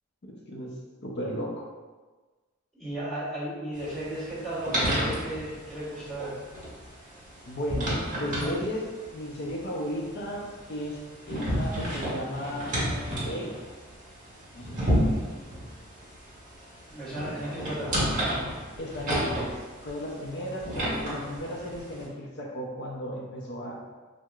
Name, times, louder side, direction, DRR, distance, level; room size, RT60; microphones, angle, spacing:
voice 1, 0.2-0.7 1.0-1.7 7.5-13.5 14.5-15.4 18.8-23.8, equal, 55° left, -1 dB, 0.6 m, -35 dB
voice 2, 2.7-6.4 16.9-18.4, right 1 dB, 5° left, -12 dB, 1.2 m, -35 dB
sound 1, 3.8-22.1, equal, 40° right, 1.4 m, -32 dB
4.5 x 2.1 x 2.4 m, 1.3 s
head